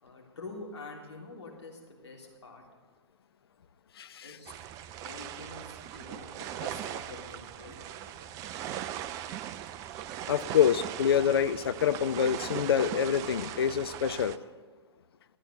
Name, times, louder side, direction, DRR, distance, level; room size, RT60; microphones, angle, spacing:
voice 1, 0.0-2.6 4.2-4.6 5.0-8.3, left 3 dB, 75° left, -2 dB, 3.3 m, -46 dB
voice 2, 4.0-4.4 10.3-14.4, left 8 dB, 55° left, 13 dB, 0.6 m, -26 dB
sound 1, 4.5-14.4, right 11 dB, 20° right, 0.4 m, -39 dB
13.5 x 9.1 x 7.9 m, 1.5 s
figure-of-eight pair, 115°, 15 cm